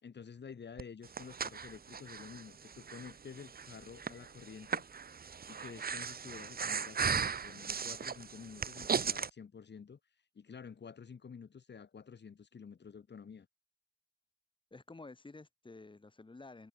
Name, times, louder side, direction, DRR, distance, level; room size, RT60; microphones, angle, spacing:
voice 1, 0.0-4.9 5.5-10.0 10.3-13.5, left 6 dB, 80° left, 6.0 m, -50 dB
Breathing, 0.8-9.3, right 6 dB, 60° right, 1.4 m, -37 dB
voice 2, 14.7-16.7, left 3 dB, 30° left, 4.4 m, -51 dB
wide cardioid pair, 150°, 18 cm